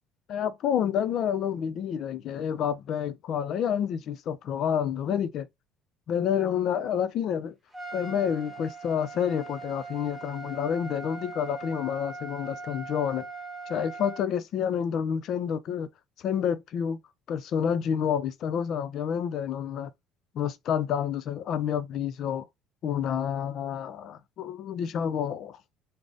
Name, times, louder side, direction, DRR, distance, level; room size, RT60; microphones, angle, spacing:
voice 1, 0.3-5.5 6.1-7.5 7.9-13.3 13.7-15.9 16.2-17.0 17.3-19.9 20.3-22.5 22.8-25.6, left 8 dB, 60° left, 0.5 m, -29 dB
Trumpet, 7.7-14.3, right 3 dB, ahead, 1.4 m, -41 dB
3.9 x 2.1 x 3.4 m
cardioid pair, 105°, 0 cm